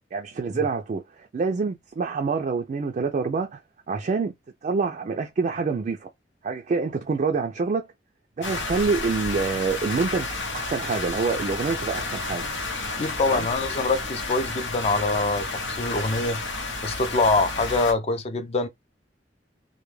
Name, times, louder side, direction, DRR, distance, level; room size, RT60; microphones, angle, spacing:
voice 1, 0.1-3.6 3.9-4.3 4.6-6.1 6.4-7.9 8.4-10.3 10.5-12.5 13.2-13.5, right 4 dB, 45° right, 0.3 m, -26 dB
sound 1, 8.4-17.9, left 3 dB, 90° left, 0.7 m, -31 dB
voice 2, 13.0-16.4 16.8-18.7, left 3 dB, 35° left, 0.4 m, -24 dB
2.2 x 2.1 x 3.1 m
head